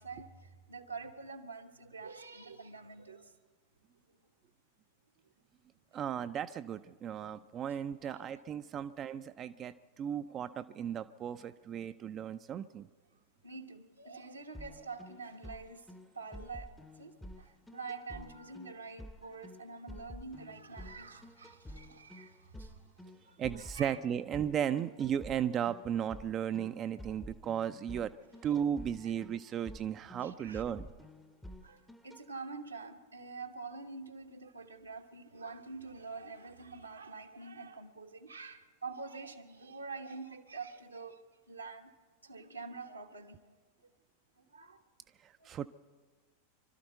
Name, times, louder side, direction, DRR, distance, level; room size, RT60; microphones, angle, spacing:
voice 1, 0.0-3.3 8.0-8.2 13.4-15.9 16.1-22.9 23.2-24.0 28.5-28.6 30.2-30.6 31.6-41.2 41.5-41.9 42.2-43.4 44.5-44.8 45.4-45.5, right 4 dB, 80° right, 1.2 m, -46 dB
voice 2, 5.9-12.9 23.4-28.1 28.4-30.9 45.2-45.7, right 9 dB, 30° right, 0.4 m, -35 dB
sound 1, 14.5-32.2, equal, 5° left, 0.7 m, -51 dB
25.0 x 13.0 x 4.5 m
figure-of-eight pair, 90°, 0 cm